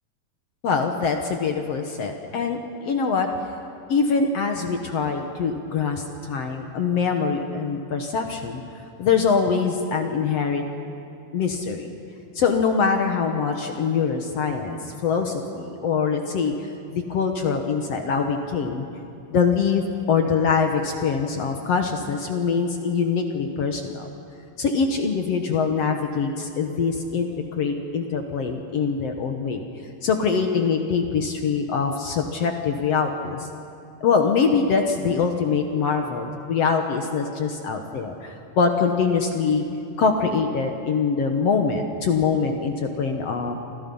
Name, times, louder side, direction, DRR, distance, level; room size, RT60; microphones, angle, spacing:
voice 1, 0.6-3.3 3.9-8.6 9.0-10.6 11.3-11.9 12.3-16.5 16.9-18.9 19.3-24.1 24.6-27.3 27.6-29.6 30.0-33.5 34.0-39.6 40.0-43.6, left 5 dB, 60° left, 4 dB, 1.8 m, -23 dB
30.0 x 25.0 x 5.6 m, 2.7 s
omnidirectional pair, 4.4 m